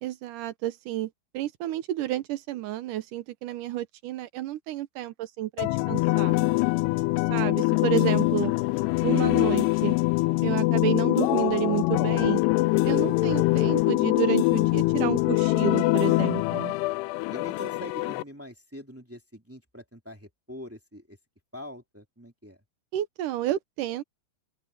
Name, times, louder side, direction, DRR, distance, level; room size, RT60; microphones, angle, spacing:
voice 1, 0.0-6.4 7.3-8.5 9.0-10.0 10.4-12.4 12.8-16.7 22.9-24.0, right 13 dB, 80° right, 1.8 m, -30 dB
sound 1, 5.6-18.2, left 22 dB, 80° left, 2.5 m, -24 dB
voice 2, 17.3-21.2 21.5-22.6, equal, 5° right, 1.3 m, -45 dB
open air
omnidirectional pair, 4.9 m